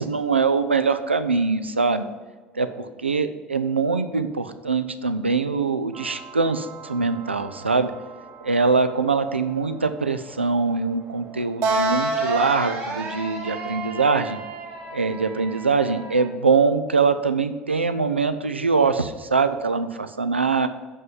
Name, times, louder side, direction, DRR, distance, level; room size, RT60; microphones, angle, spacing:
voice 1, 0.0-2.1 2.6-7.9 8.4-14.4 14.9-20.7, right 4 dB, 85° right, 10 dB, 0.4 m, -23 dB
sound 1, 5.9-16.3, right 3 dB, 50° right, 1.7 m, -31 dB
6.4 x 5.4 x 5.5 m, 1.3 s
figure-of-eight pair, 65°, 6 cm